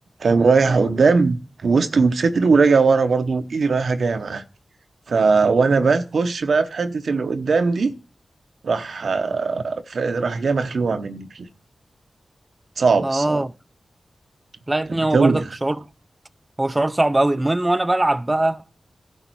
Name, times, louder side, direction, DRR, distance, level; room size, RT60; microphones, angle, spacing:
voice 1, 0.2-4.4 5.1-7.9 8.6-11.5 12.8-13.4 14.9-15.5, right 4 dB, 80° right, 0.8 m, -19 dB
voice 2, 13.0-13.5 14.7-15.8 16.6-18.6, right 1 dB, 25° right, 0.5 m, -21 dB
11.0 x 7.3 x 4.6 m
cardioid pair, 45°, 0 cm